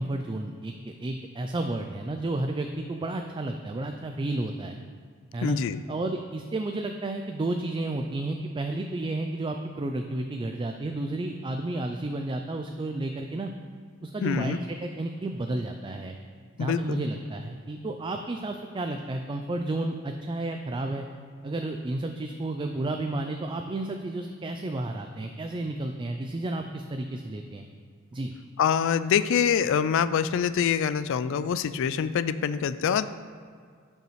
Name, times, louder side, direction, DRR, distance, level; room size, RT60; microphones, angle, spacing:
voice 1, 0.0-4.8 5.3-5.6 5.9-13.5 14.0-16.2 16.6-21.1 21.4-27.7 28.1-28.3, right 2 dB, 25° right, 4 dB, 0.4 m, -32 dB
voice 2, 5.4-5.8 14.2-14.6 16.6-17.0 28.6-33.0, left 7 dB, 65° left, 13 dB, 0.3 m, -25 dB
13.0 x 5.6 x 3.2 m, 2.1 s
head